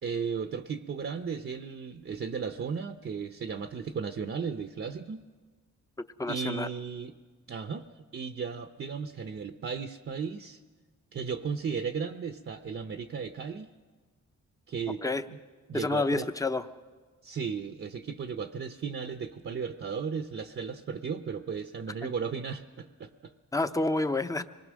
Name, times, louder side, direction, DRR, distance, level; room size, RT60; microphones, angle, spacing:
voice 1, 0.0-5.2 6.3-7.1 7.5-7.9 8.1-10.6 11.1-13.7 14.7-15.0 15.3-15.4 15.7-16.3 17.2-23.3, right 6 dB, 40° right, 8 dB, 0.8 m, -35 dB
voice 2, 6.2-6.7 15.0-15.2 15.7-16.6 22.0-22.1 23.5-24.4, left 2 dB, 10° left, 10 dB, 0.7 m, -29 dB
26.0 x 20.0 x 6.3 m, 1.4 s
cardioid pair, 120°, 32 cm